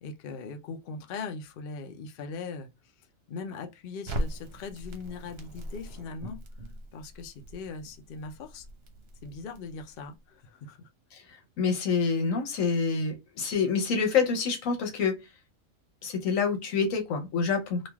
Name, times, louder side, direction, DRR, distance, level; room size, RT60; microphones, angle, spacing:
voice 1, 0.0-2.7 3.0-6.4 6.9-8.7 9.2-10.9, left 4 dB, 55° left, 0.6 m, -40 dB
Crackle, 4.1-10.2, right 1 dB, 60° right, 0.8 m, -40 dB
voice 2, 11.1-15.2 16.0-17.9, left 5 dB, 80° left, 1.1 m, -27 dB
3.1 x 2.4 x 2.3 m
omnidirectional pair, 1.4 m